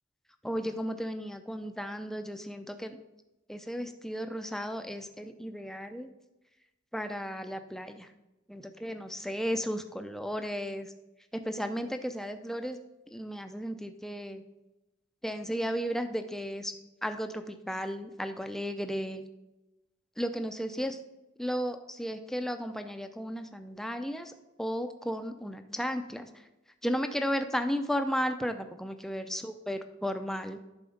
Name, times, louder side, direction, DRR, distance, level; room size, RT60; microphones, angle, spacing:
voice 1, 0.4-3.0 3.5-6.1 6.9-8.1 8.5-10.9 11.3-12.8 13.1-14.4 15.2-16.7 17.0-19.2 20.2-21.0 21.4-24.3 24.6-26.3 26.8-30.6, equal, ahead, 7 dB, 0.5 m, -34 dB
10.5 x 4.3 x 5.1 m, 0.99 s
head